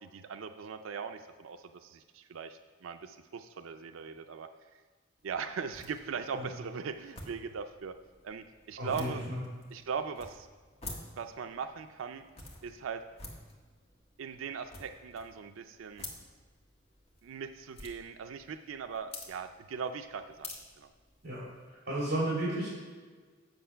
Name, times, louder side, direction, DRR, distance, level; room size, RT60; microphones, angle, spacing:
voice 1, 0.0-4.5 5.2-7.9 8.2-9.3 9.7-10.5 11.2-12.2 12.6-13.0 14.2-16.1 17.2-20.5 20.8-20.9, right 6 dB, 90° right, 8 dB, 0.4 m, -39 dB
sound 1, 5.2-21.7, left 2 dB, 30° left, 1.4 m, -51 dB
voice 2, 8.8-9.4 21.2-21.4 21.9-22.7, right 1 dB, 55° right, -7 dB, 2.6 m, -33 dB
8.0 x 6.9 x 5.6 m, 1.5 s
head